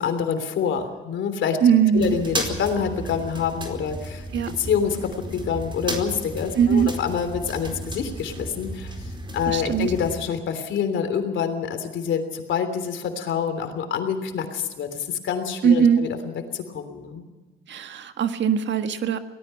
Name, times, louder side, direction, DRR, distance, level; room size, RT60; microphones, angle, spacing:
voice 1, 0.0-1.6 1.9-4.3 4.6-9.0 9.3-17.2, left 7 dB, 70° left, 8 dB, 3.3 m, -26 dB
voice 2, 1.6-2.1 4.3-4.5 6.6-6.9 9.5-9.9 15.6-16.0 17.7-19.2, right 7 dB, 65° right, 8 dB, 1.6 m, -20 dB
sound 1, 1.9-10.2, right 1 dB, 25° right, 4.5 m, -34 dB
24.5 x 18.5 x 5.8 m, 1.3 s
cardioid pair, 90°, 20 cm